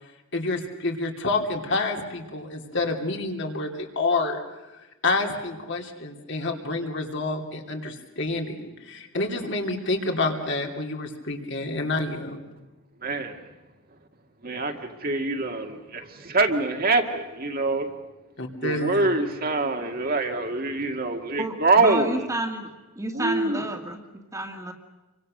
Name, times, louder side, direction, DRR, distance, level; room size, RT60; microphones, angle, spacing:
voice 1, 0.3-4.4 5.0-12.4 18.4-19.1, left 2 dB, 60° left, 2 dB, 3.0 m, -28 dB
voice 2, 13.0-13.4 14.4-17.9 18.6-22.2 23.1-23.6, right 3 dB, 45° right, 4 dB, 2.0 m, -25 dB
voice 3, 21.4-22.7 23.0-24.7, right 2 dB, 15° right, 4 dB, 2.0 m, -31 dB
28.0 x 24.0 x 6.6 m, 1.1 s
head